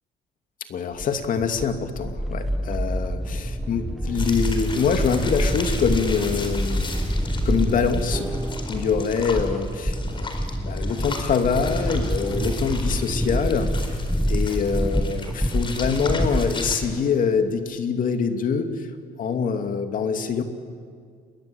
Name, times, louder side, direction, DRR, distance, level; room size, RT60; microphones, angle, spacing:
voice 1, 0.7-6.9 7.4-8.3 8.7-14.0 14.3-18.9 19.2-20.4, left 6 dB, 55° left, 6 dB, 2.6 m, -25 dB
sound 1, 1.0-17.0, equal, ahead, 1.0 m, -27 dB
sound 2, 4.1-16.8, left 3 dB, 30° left, 4.4 m, -37 dB
28.5 x 22.5 x 8.7 m, 2.1 s
cardioid pair, 110°, 17 cm